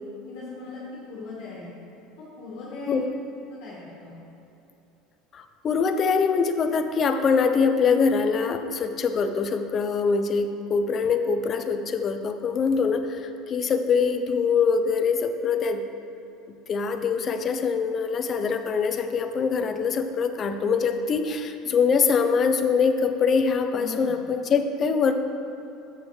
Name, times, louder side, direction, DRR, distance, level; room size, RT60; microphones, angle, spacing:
voice 1, 0.2-0.8 1.1-1.7 2.4-3.1 3.6-4.2 23.7-24.2, left 3 dB, 65° left, -6 dB, 1.8 m, -38 dB
voice 2, 5.3-15.8 16.5-25.1, left 5 dB, 35° left, 7 dB, 0.6 m, -24 dB
7.4 x 7.4 x 4.8 m, 3.0 s
supercardioid pair, 125°, 0 cm